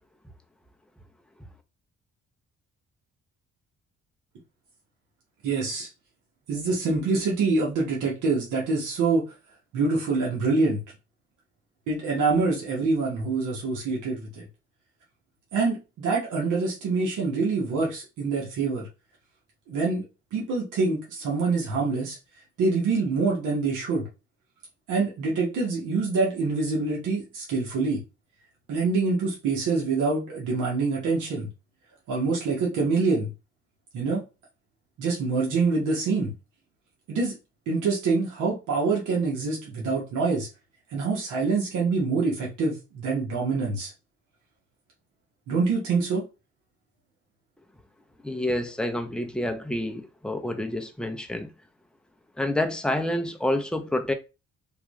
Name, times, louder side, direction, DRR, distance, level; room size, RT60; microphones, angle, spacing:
voice 1, 5.4-5.9 6.5-9.2 9.7-10.8 11.9-14.4 15.5-18.9 19.7-20.0 20.3-22.2 22.6-24.1 24.9-28.0 28.7-31.5 32.1-33.3 33.9-34.2 35.0-36.3 37.1-37.4 37.7-40.5 40.9-43.9 45.5-46.2, right 4 dB, 85° right, 1.3 m, -25 dB
voice 2, 48.2-51.5 52.4-54.1, left 1 dB, 5° left, 0.6 m, -28 dB
3.6 x 2.3 x 3.1 m
cardioid pair, 90°, 30 cm